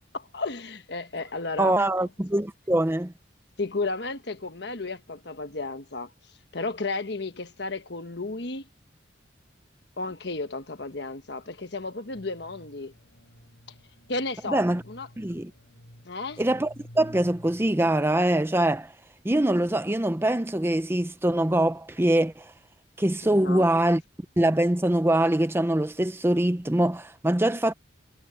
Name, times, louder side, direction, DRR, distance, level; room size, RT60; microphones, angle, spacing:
voice 1, 0.1-2.1 3.6-6.1 6.5-8.7 10.0-12.9 14.1-15.1 16.0-16.4 23.2-23.6, left 3 dB, 60° left, 1.3 m, -33 dB
voice 2, 1.6-3.1 14.5-14.8 15.2-15.5 16.4-18.9 19.2-22.4 23.0-24.0 24.4-27.7, right 1 dB, 15° right, 0.6 m, -23 dB
sound 1, 12.1-18.1, equal, 75° left, 7.1 m, -51 dB
head